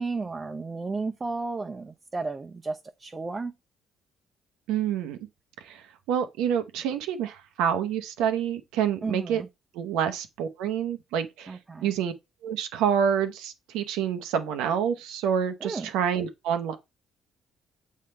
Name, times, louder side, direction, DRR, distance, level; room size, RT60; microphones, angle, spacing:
voice 1, 0.0-3.5 9.0-9.5 11.5-11.9 15.6-15.9, right 3 dB, 30° right, 0.6 m, -33 dB
voice 2, 4.7-5.2 5.6-9.4 9.7-12.1 12.4-16.8, right 8 dB, 75° right, 0.7 m, -28 dB
7.4 x 3.4 x 4.2 m
hypercardioid pair, 50°, 0 cm